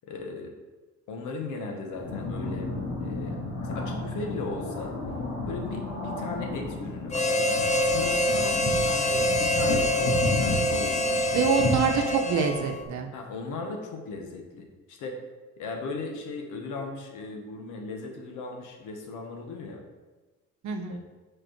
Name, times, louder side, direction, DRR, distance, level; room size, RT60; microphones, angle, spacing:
voice 1, 0.1-0.5 1.1-2.7 3.0-3.4 3.6-5.0 5.5-11.4 13.1-15.2 15.6-19.8 20.9-21.0, left 3 dB, 90° left, 3 dB, 1.1 m, -37 dB
sound 1, 1.9-12.9, left 2 dB, 65° left, 1.9 m, -33 dB
Harmonica, 7.1-12.9, left 1 dB, 25° left, 0.5 m, -25 dB
voice 2, 11.3-13.1 20.6-21.0, right 6 dB, 70° right, 5 dB, 0.8 m, -26 dB
5.1 x 4.4 x 4.4 m, 1.2 s
cardioid pair, 90°, 30 cm